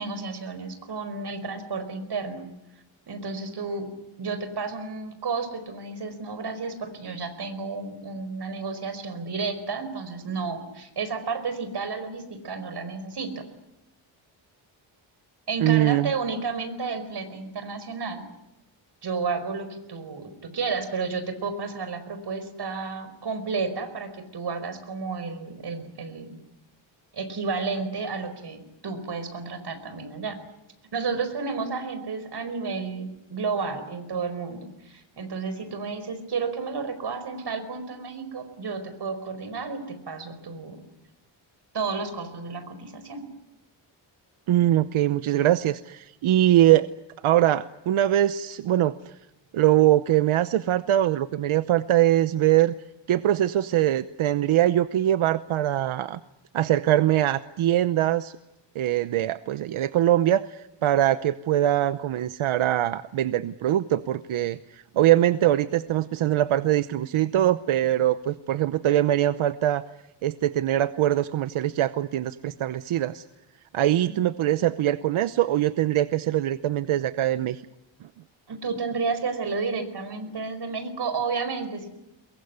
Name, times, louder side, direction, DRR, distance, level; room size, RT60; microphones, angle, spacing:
voice 1, 0.0-2.5 3.1-3.9 4.2-13.4 15.5-18.2 19.0-26.4 27.1-30.4 30.9-40.8 41.7-43.3 74.1-74.2 78.5-81.9, right 4 dB, 55° right, 10 dB, 5.0 m, -32 dB
voice 2, 15.6-16.1 44.5-46.9 47.2-49.0 49.5-52.7 53.1-56.2 56.5-58.3 58.7-69.8 70.2-73.2 73.7-77.6, right 13 dB, 85° right, 13 dB, 0.9 m, -22 dB
22.5 x 22.5 x 9.6 m, 0.90 s
wide cardioid pair, 125°, 47 cm